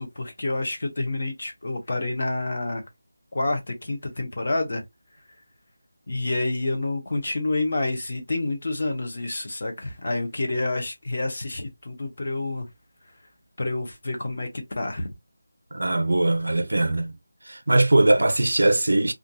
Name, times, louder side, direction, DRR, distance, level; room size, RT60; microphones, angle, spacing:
voice 1, 0.0-2.8 3.3-4.8 6.1-12.7 13.6-14.5 14.8-15.1, left 2 dB, 35° left, 0.7 m, -28 dB
voice 2, 15.7-17.2 17.5-19.1, right 2 dB, 85° right, 0.6 m, -21 dB
2.5 x 2.3 x 2.6 m
figure-of-eight pair, 180°, 0 cm